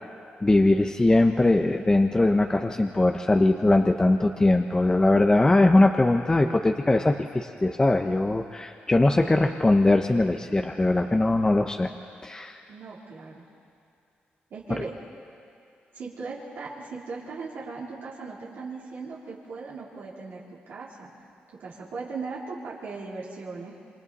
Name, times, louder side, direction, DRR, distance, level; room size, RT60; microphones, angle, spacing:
voice 1, 0.4-11.9 12.2-12.6 14.8-14.9, left 2 dB, 20° left, 4 dB, 0.8 m, -21 dB
voice 2, 12.7-13.5 14.5-14.9 15.9-21.1 21.5-23.7, right 4 dB, 80° right, -7 dB, 3.6 m, -38 dB
27.0 x 24.5 x 4.2 m, 2.5 s
cardioid pair, 90°, 4 cm